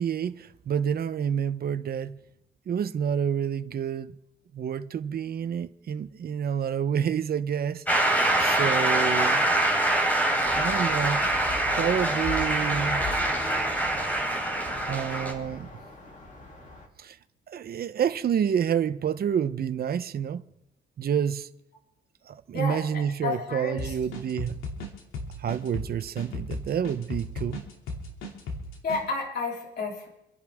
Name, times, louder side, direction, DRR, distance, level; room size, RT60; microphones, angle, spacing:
voice 1, 0.0-2.1 2.7-4.1 4.5-7.8 8.4-9.4 10.6-11.3 11.7-13.1 14.9-15.7 17.0-17.2 17.5-20.4 21.0-21.5 22.3-24.5 25.4-27.6, right 8 dB, 50° right, 0.9 m, -28 dB
Shout / Cheering / Applause, 7.9-15.3, right 1 dB, 10° left, 3.8 m, -25 dB
sound 1, 10.4-16.9, left 2 dB, 40° left, 3.1 m, -40 dB
voice 2, 22.5-23.9 28.8-30.1, left 3 dB, 55° left, 3.5 m, -31 dB
sound 2, 23.8-29.0, left 2 dB, 80° left, 2.9 m, -36 dB
27.0 x 11.0 x 3.7 m
cardioid pair, 90°, 20 cm